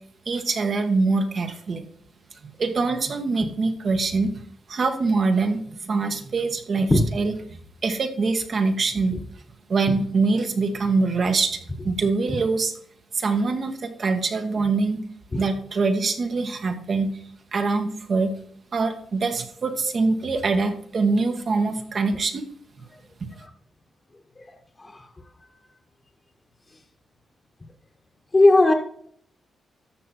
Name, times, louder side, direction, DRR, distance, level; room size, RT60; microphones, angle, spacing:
voice 1, 0.3-1.8 2.4-4.3 4.7-7.3 7.8-9.1 9.7-12.7 13.1-15.0 15.4-17.1 17.5-18.3 18.7-22.4, right 3 dB, 55° right, 6 dB, 1.7 m, -24 dB
voice 2, 28.3-28.7, left 2 dB, 30° left, 1 dB, 1.5 m, -18 dB
13.0 x 6.4 x 4.4 m, 0.64 s
cardioid pair, 80°, 0 cm